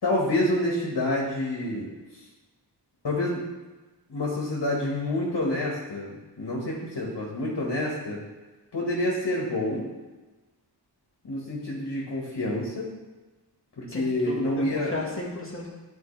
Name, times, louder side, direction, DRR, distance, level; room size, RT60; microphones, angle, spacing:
voice 1, 0.0-1.9 2.1-2.2 3.0-3.4 4.1-8.2 8.7-9.9 11.2-12.9 13.8-14.9, left 1 dB, 70° left, -4 dB, 1.7 m, -28 dB
voice 2, 13.9-15.7, left 2 dB, 30° left, -3 dB, 1.8 m, -34 dB
11.0 x 4.6 x 3.3 m, 1.2 s
wide cardioid pair, 80°, 41 cm